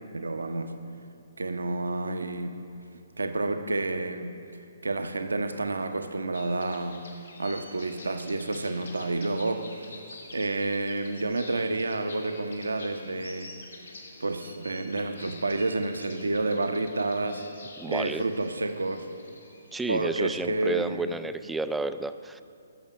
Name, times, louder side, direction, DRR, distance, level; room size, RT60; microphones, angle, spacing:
voice 1, 0.1-0.7 1.4-2.6 3.2-7.1 7.4-10.0 10.3-17.4 17.9-19.1 19.9-21.1, right 2 dB, 75° right, 8 dB, 0.8 m, -30 dB
sound 1, 6.3-20.9, left 2 dB, 70° left, 2.1 m, -48 dB
voice 2, 17.8-18.2 19.7-22.4, right 3 dB, 5° right, 11 dB, 0.3 m, -31 dB
11.0 x 7.2 x 6.2 m, 2.8 s
figure-of-eight pair, 130°, 0 cm